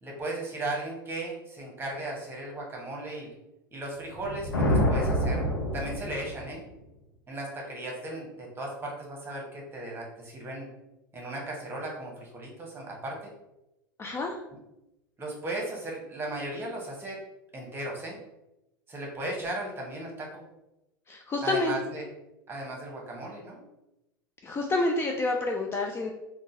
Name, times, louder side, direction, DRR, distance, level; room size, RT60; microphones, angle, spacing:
voice 1, 0.0-3.3 3.7-5.4 5.7-6.6 7.3-10.7 11.1-13.3 15.2-17.2 17.5-18.2 18.9-20.4 21.4-22.1 22.5-23.6, right 1 dB, 20° right, -1 dB, 1.1 m, -36 dB
sound 1, 4.1-6.6, equal, 80° left, 0.6 m, -27 dB
voice 2, 14.0-14.4 21.1-21.7 24.4-26.1, left 2 dB, 20° left, 1 dB, 0.4 m, -28 dB
3.7 x 2.3 x 2.7 m, 0.92 s
figure-of-eight pair, 80°, 12 cm